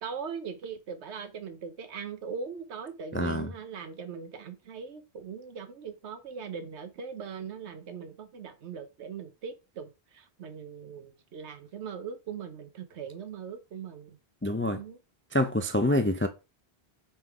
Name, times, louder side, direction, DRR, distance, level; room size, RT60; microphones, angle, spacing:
voice 1, 0.0-14.2 14.7-15.0, right 6 dB, 85° right, 1.1 m, -40 dB
voice 2, 3.1-3.5 14.4-14.8 15.3-16.3, left 1 dB, 20° left, 0.3 m, -26 dB
5.9 x 3.8 x 4.6 m
omnidirectional pair, 1.1 m